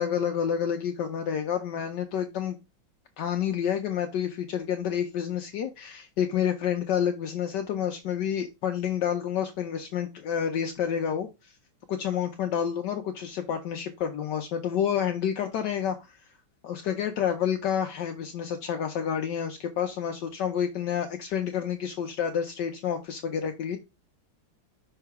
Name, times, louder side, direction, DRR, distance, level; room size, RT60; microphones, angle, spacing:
voice 1, 0.0-2.6 3.2-11.5 11.9-16.2 16.6-23.8, left 8 dB, 70° left, 5 dB, 1.2 m, -29 dB
5.7 x 3.9 x 4.6 m, 0.25 s
omnidirectional pair, 2.1 m